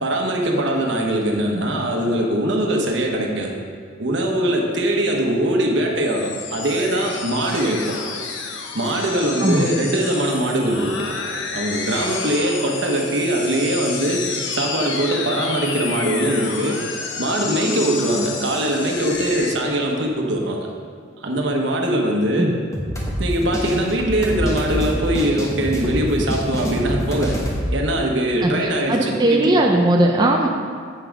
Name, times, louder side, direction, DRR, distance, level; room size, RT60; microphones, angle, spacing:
voice 1, 0.0-3.6 4.0-8.0 8.5-11.1 11.5-14.2 14.5-16.8 17.2-20.7 21.2-22.5 23.2-27.4 27.7-29.6, right 1 dB, 75° right, 1 dB, 1.1 m, -21 dB
sound 1, 6.0-19.5, left 5 dB, 80° left, 0.8 m, -30 dB
sound 2, 22.7-27.6, equal, 15° left, 1.1 m, -26 dB
voice 2, 28.4-30.5, right 1 dB, 20° right, 0 dB, 0.5 m, -18 dB
7.6 x 5.9 x 4.7 m, 2.1 s
head